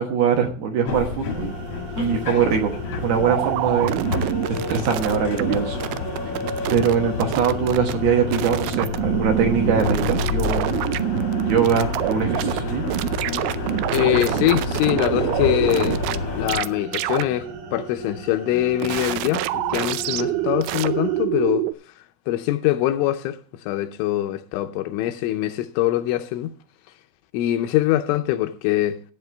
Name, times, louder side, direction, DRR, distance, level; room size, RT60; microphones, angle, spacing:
voice 1, 0.0-1.5 2.0-5.9 6.7-11.1 11.5-12.9, right 7 dB, 65° right, 2.8 m, -22 dB
sound 1, 0.8-16.6, left 4 dB, 60° left, 1.6 m, -29 dB
sound 2, 1.3-21.2, right 2 dB, 50° right, 2.7 m, -37 dB
sound 3, 3.3-5.5 5.8-7.0 7.2-7.9 8.3-12.6 12.9-16.2 16.5-16.7 16.9-17.2 18.8-21.7, right 16 dB, 90° right, 2.5 m, -26 dB
voice 2, 13.9-16.0 16.4-21.7 22.3-26.5 27.3-29.0, left 14 dB, 80° left, 2.9 m, -23 dB
15.5 x 9.0 x 3.4 m
omnidirectional pair, 5.7 m